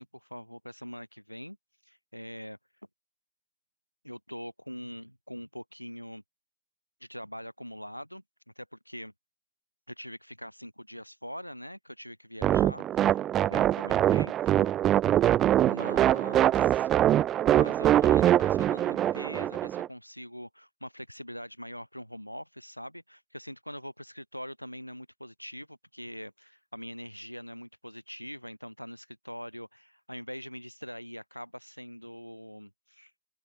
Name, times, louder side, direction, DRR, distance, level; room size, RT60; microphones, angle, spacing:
voice 1, 0.0-1.6 1.8-2.6 4.0-6.2 7.0-8.2 8.6-9.1 9.9-13.2 13.4-14.6 15.6-16.9 17.4-33.1, equal, 90° left, 6.5 m, -43 dB
sound 1, 12.4-19.9, right 12 dB, 30° right, 0.3 m, -23 dB
open air
figure-of-eight pair, 90°, 0 cm